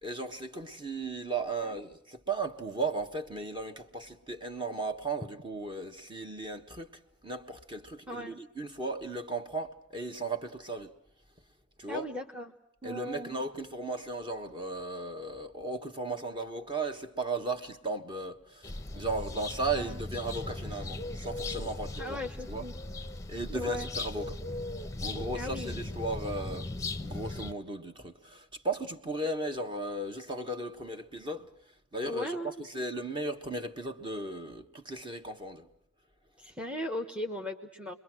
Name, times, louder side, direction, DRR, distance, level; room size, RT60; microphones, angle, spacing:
voice 1, 0.0-6.9 7.2-10.9 11.8-12.1 12.8-22.2 22.5-22.6 23.3-24.4 25.0-26.7 27.0-31.5 31.9-35.7, right 2 dB, 25° right, 1.5 m, -36 dB
voice 2, 8.1-8.4 11.9-12.6 12.8-13.3 19.7-20.0 22.0-22.7 23.5-23.9 25.3-25.8 32.0-32.7 36.4-37.9, left 1 dB, 5° right, 1.1 m, -37 dB
sound 1, 18.6-27.5, left 2 dB, 15° left, 0.9 m, -38 dB
28.5 x 22.5 x 6.1 m
head